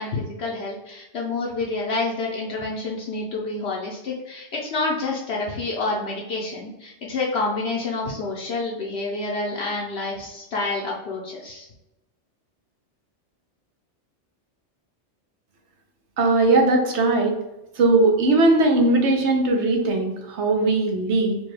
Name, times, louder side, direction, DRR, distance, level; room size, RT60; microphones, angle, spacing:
voice 1, 0.0-11.7, left 3 dB, 65° left, -3 dB, 0.9 m, -28 dB
voice 2, 16.2-17.4 17.8-21.4, right 2 dB, 70° right, 3 dB, 1.1 m, -19 dB
4.3 x 2.3 x 3.2 m, 0.95 s
omnidirectional pair, 1.2 m